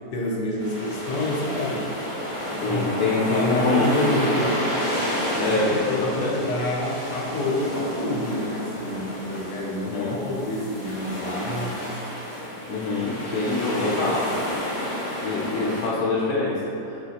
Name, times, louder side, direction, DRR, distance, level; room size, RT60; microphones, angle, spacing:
voice 1, 0.1-1.9 2.4-3.0 3.3-4.6 5.3-12.0 13.3-14.3, left 1 dB, 90° left, -3 dB, 1.3 m, -28 dB
sound 1, 0.6-15.9, equal, 50° left, 0.3 m, -30 dB
voice 2, 2.6-4.1 5.4-6.4 9.8-10.2 12.7-14.6 15.2-17.0, left 3 dB, 70° left, -6 dB, 1.0 m, -25 dB
3.5 x 2.8 x 4.0 m, 2.6 s
omnidirectional pair, 1.8 m